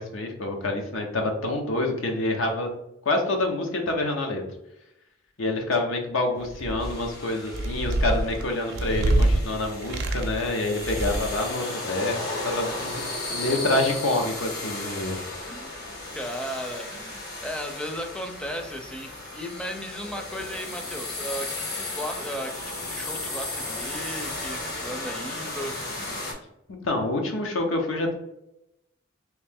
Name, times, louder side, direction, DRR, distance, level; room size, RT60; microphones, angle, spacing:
voice 1, 0.0-2.7 3.0-4.4 5.4-13.0 13.3-15.2 26.8-28.1, left 2 dB, 85° left, 3 dB, 0.8 m, -27 dB
sound 1, 6.4-7.1 7.5-9.4 9.8-10.5 10.8-11.5, right 1 dB, 60° right, 0.5 m, -25 dB
sound 2, 6.8-26.3, left 2 dB, 55° left, 1.2 m, -35 dB
voice 2, 13.5-14.0 15.5-25.8, equal, 5° left, 4 dB, 0.4 m, -36 dB
3.1 x 2.7 x 3.5 m, 0.84 s
head